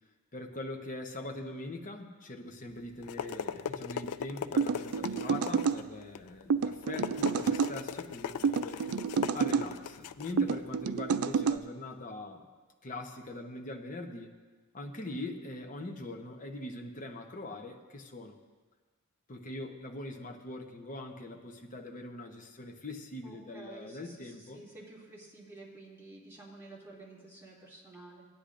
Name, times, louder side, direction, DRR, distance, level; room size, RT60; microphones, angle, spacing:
voice 1, 0.3-8.8 9.3-12.5 12.8-14.3 14.7-18.4 19.3-24.6, left 2 dB, 35° left, 2 dB, 1.0 m, -42 dB
sound 1, 2.7-11.6, left 7 dB, 85° left, 0.4 m, -40 dB
sound 2, 4.6-5.8 6.5-7.7 8.4-9.7 10.4-11.6, right 6 dB, 70° right, 0.4 m, -29 dB
voice 2, 23.2-28.3, right 2 dB, 10° right, -7 dB, 2.5 m, -51 dB
17.0 x 10.0 x 2.6 m, 1.4 s
head